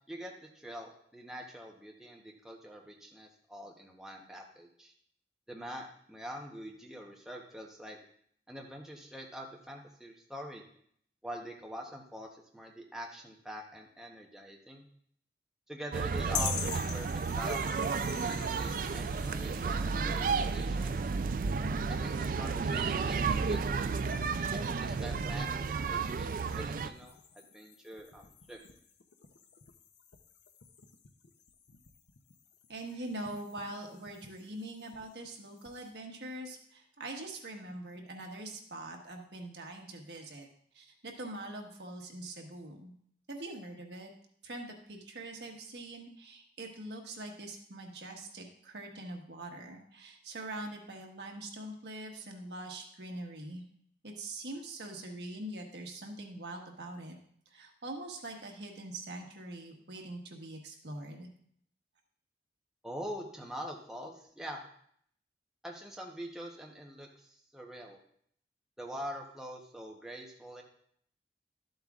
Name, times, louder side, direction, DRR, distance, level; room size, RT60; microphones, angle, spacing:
voice 1, 0.1-4.9 5.5-8.0 8.5-10.6 11.2-14.9 15.7-21.0 21.9-23.9 24.5-26.3 26.5-27.2 27.5-28.6 62.8-64.6 65.6-68.0 68.8-70.6, equal, 5° right, -1 dB, 0.9 m, -44 dB
sound 1, 15.9-26.9, right 5 dB, 50° right, 0.3 m, -32 dB
sound 2, 16.3-35.9, left 7 dB, 80° left, 0.7 m, -47 dB
voice 2, 32.7-40.5 40.7-42.9 43.3-44.1 44.4-53.6 54.0-57.2 57.5-61.3, right 1 dB, 75° right, 2 dB, 1.4 m, -43 dB
12.5 x 7.8 x 2.4 m, 0.64 s
head